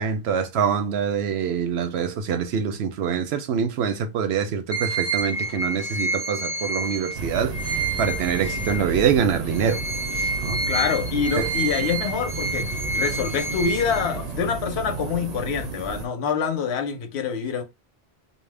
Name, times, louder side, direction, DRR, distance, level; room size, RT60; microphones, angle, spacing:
voice 1, 0.0-7.5 8.0-9.8 10.4-10.6 11.4-11.5, right 7 dB, 85° right, 0.9 m, -25 dB
sound 1, 4.7-9.1 9.5-14.4, right 2 dB, 40° left, 0.6 m, -29 dB
sound 2, 7.1-16.1, right 4 dB, 50° right, 0.5 m, -32 dB
voice 2, 10.7-17.6, left 6 dB, 90° left, 0.9 m, -26 dB
2.7 x 2.1 x 3.3 m
omnidirectional pair, 1.1 m